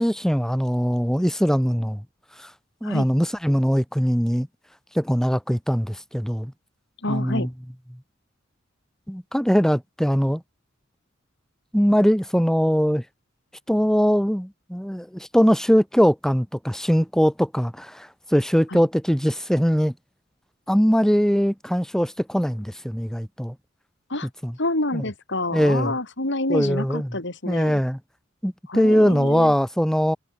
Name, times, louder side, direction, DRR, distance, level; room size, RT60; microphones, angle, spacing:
voice 1, 0.0-2.0 2.4-2.5 2.8-4.5 4.9-6.5 7.1-7.5 9.1-10.4 11.7-13.0 13.7-19.9 20.7-23.5 24.4-24.5 24.9-25.0 25.5-26.0 26.5-27.1 27.4-28.0 28.4-30.2, equal, 5° left, 3.2 m, -21 dB
voice 2, 7.0-7.5 18.7-18.8 24.1-24.3 24.6-27.8 28.7-29.5, left 2 dB, 65° left, 4.7 m, -28 dB
head